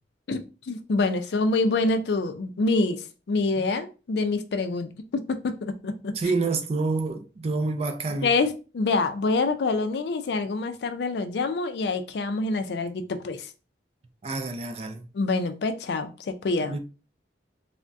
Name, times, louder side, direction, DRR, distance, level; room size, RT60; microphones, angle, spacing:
voice 1, 0.7-6.3 8.2-13.5 15.1-16.7, left 3 dB, 70° left, 0.4 m, -26 dB
voice 2, 6.2-8.3 14.2-15.0 16.7-16.8, right 3 dB, 35° right, 0.3 m, -28 dB
3.4 x 2.1 x 2.5 m
head